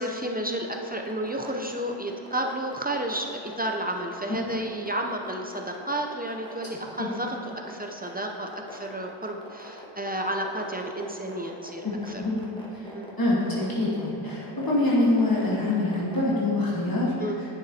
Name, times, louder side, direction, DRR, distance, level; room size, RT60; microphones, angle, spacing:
voice 1, 0.0-12.2 12.9-13.2 17.2-17.4, right 1 dB, 20° right, 2 dB, 0.4 m, -32 dB
sound 1, 0.5-16.2, equal, 10° left, 1.4 m, -43 dB
voice 2, 11.8-12.4 12.7-12.9 13.2-17.1, left 2 dB, 45° left, -6 dB, 1.5 m, -25 dB
9.7 x 6.5 x 2.7 m, 2.5 s
wide cardioid pair, 70°, 49 cm